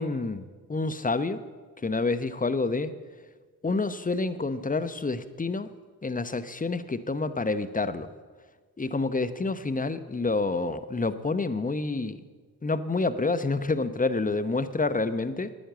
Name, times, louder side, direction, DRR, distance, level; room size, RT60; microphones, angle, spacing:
voice 1, 0.0-1.4 1.8-2.9 3.6-5.7 6.0-8.1 8.8-12.2 12.6-15.5, left 3 dB, 20° left, 13 dB, 0.9 m, -28 dB
11.5 x 9.1 x 8.1 m, 1.5 s
hypercardioid pair, 40°, 43 cm